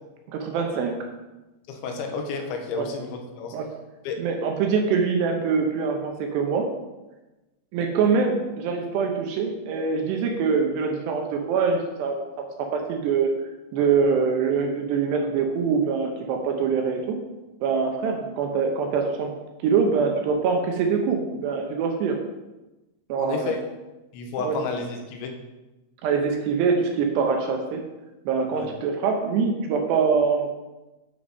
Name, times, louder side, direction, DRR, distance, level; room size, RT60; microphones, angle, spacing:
voice 1, 0.3-1.1 2.8-2.9 3.5-3.7 4.2-6.7 7.7-13.3 13.7-17.2 17.6-19.3 19.6-22.2 23.1-23.5 24.4-24.6 26.0-27.8 28.3-30.5, right 5 dB, 75° right, 3 dB, 2.8 m, -24 dB
voice 2, 1.7-3.5 4.0-4.2 23.2-23.7 24.1-25.3 28.5-28.7, left 4 dB, 80° left, 3 dB, 3.4 m, -31 dB
9.5 x 6.5 x 5.4 m, 1.1 s
omnidirectional pair, 5.4 m